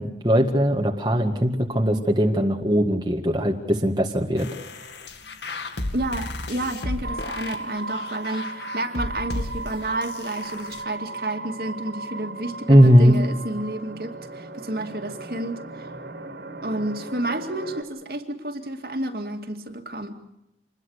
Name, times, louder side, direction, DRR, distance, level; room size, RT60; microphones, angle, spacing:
voice 1, 0.0-4.5 12.7-13.2, equal, 25° right, 2 dB, 1.8 m, -19 dB
sound 1, 4.4-10.8, left 2 dB, 85° left, 2.2 m, -34 dB
voice 2, 5.9-15.9 16.6-20.2, right 1 dB, 55° right, 5 dB, 2.5 m, -30 dB
sound 2, 7.0-17.8, right 2 dB, 80° right, 3.2 m, -37 dB
27.5 x 21.5 x 6.6 m, 0.86 s
head